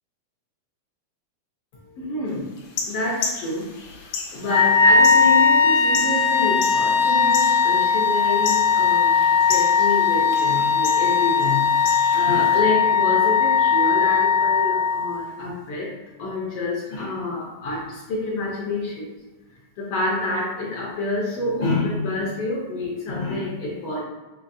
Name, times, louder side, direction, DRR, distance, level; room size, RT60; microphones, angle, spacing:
voice 1, 1.9-2.5 2.9-3.7 4.0-15.9 16.2-19.1 19.8-24.0, left 2 dB, 70° left, -4 dB, 1.6 m, -28 dB
sound 1, 2.6-12.6, left 5 dB, 85° left, 2.2 m, -34 dB
Wind instrument woodwind instrument, 4.4-15.2, left 6 dB, 70° right, 2.1 m, -18 dB
6.8 x 2.7 x 2.6 m, 1.3 s
omnidirectional pair, 3.4 m